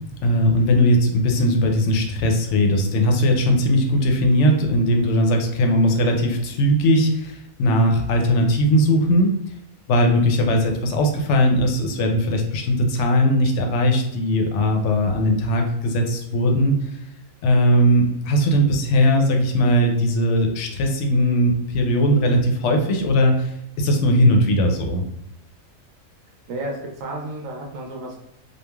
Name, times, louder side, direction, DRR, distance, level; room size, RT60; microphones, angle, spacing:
voice 1, 0.2-9.3 9.9-16.8 17.4-25.1, equal, 70° left, 3 dB, 0.8 m, -19 dB
voice 2, 26.5-28.2, right 1 dB, 80° right, 0 dB, 1.0 m, -32 dB
3.1 x 2.3 x 2.2 m, 0.81 s
omnidirectional pair, 1.4 m